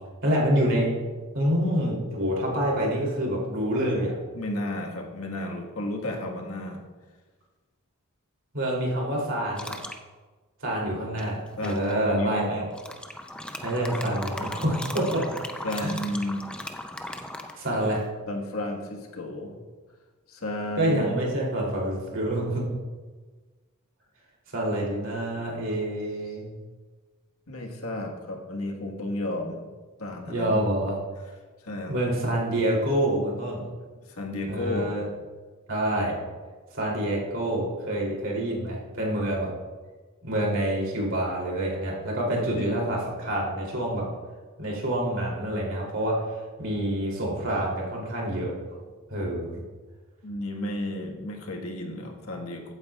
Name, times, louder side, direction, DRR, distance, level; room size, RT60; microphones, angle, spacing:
voice 1, 0.2-0.9 1.3-4.1 8.5-9.7 10.6-12.6 13.6-15.2 15.7-16.0 17.6-18.0 20.8-22.6 24.5-26.5 30.3-31.0 31.9-33.6 34.5-35.0 35.7-36.2 36.7-39.5 40.2-44.0 44.6-46.1 46.6-48.5 49.1-49.5, right 1 dB, 60° right, -3 dB, 3.0 m, -27 dB
voice 2, 4.3-6.8 11.6-12.6 15.6-16.5 18.3-19.6 20.3-21.2 26.3-26.4 27.5-29.7 30.0-30.9 31.6-31.9 34.0-34.9 42.5-42.8 50.2-52.7, left 1 dB, 80° left, 1 dB, 1.5 m, -33 dB
sound 1, 9.6-10.0 11.2-11.9 12.7-18.1, left 1 dB, 5° left, 0.4 m, -37 dB
15.0 x 8.8 x 2.4 m, 1.3 s
head